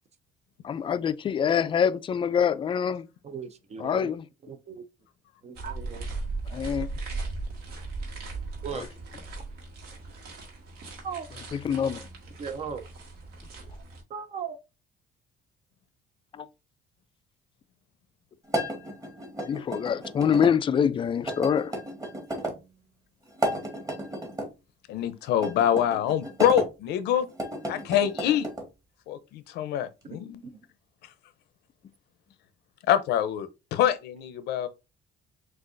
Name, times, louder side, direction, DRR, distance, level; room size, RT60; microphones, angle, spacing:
voice 1, 0.6-3.0 3.8-4.2 6.5-6.9 11.6-12.0 16.4-16.5 19.4-21.7, left 7 dB, 30° left, 0.3 m, -25 dB
voice 2, 3.2-4.1 4.4-4.8 5.4-6.1 8.6-8.8 11.0-11.3 12.4-12.8 14.1-14.6 30.1-30.6, right 7 dB, 40° right, 0.6 m, -37 dB
sound 1, 5.6-14.0, right 3 dB, 65° right, 1.7 m, -38 dB
sound 2, 18.5-20.5 21.3-22.6 23.3-24.5 25.3-26.7 27.3-28.7, right 1 dB, 20° right, 1.5 m, -33 dB
voice 3, 24.9-27.3 27.7-28.5 29.1-30.4 32.9-34.7, left 10 dB, 80° left, 0.6 m, -25 dB
6.2 x 2.5 x 2.5 m
cardioid pair, 110°, 17 cm